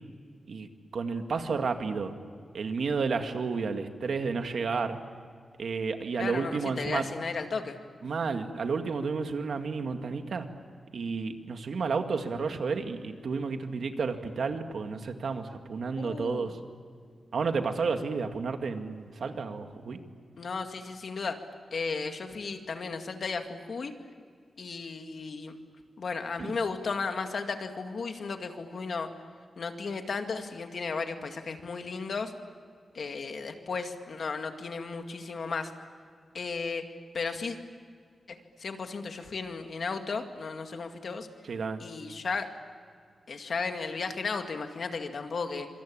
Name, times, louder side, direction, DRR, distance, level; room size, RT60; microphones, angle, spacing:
voice 1, 0.5-2.1 2.5-5.0 5.6-7.1 8.0-10.5 10.9-16.6 17.3-20.0 26.4-26.6 41.4-41.8, right 4 dB, 70° right, 6 dB, 2.1 m, -31 dB
voice 2, 6.2-7.8 16.0-16.6 20.4-21.4 21.7-23.9 24.6-25.6 26.0-29.1 29.6-32.3 32.9-35.7 36.3-36.8 37.1-37.6 38.3-41.3 41.8-42.5 43.3-45.7, left 4 dB, 60° left, 5 dB, 2.2 m, -34 dB
26.0 x 25.5 x 8.8 m, 2.1 s
wide cardioid pair, 160°, 0 cm